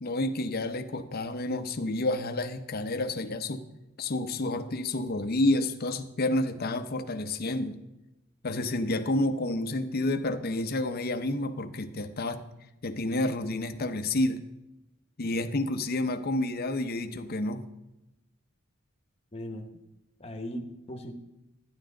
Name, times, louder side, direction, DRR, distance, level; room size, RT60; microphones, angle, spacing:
voice 1, 0.0-3.6 4.0-7.8 8.4-12.4 12.8-14.4 15.2-17.6, left 2 dB, 45° left, 8 dB, 0.6 m, -29 dB
voice 2, 19.3-19.7 20.2-21.2, equal, 30° left, 5 dB, 1.0 m, -38 dB
11.0 x 10.5 x 3.8 m, 0.94 s
head